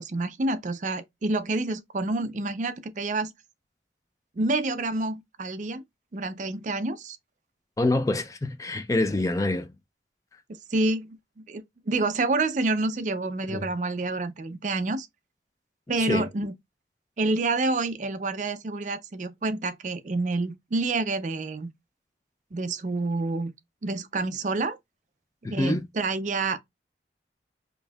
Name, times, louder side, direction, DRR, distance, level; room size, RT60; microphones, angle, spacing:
voice 1, 0.0-3.3 4.4-5.8 6.1-7.2 10.7-15.1 15.9-16.5 17.2-21.7 22.5-23.5 23.8-24.8 25.5-26.6, right 2 dB, 45° right, 0.5 m, -28 dB
voice 2, 7.8-9.7 13.5-13.7 16.0-16.3 25.4-25.9, left 2 dB, 20° left, 0.3 m, -26 dB
5.1 x 2.6 x 2.2 m
head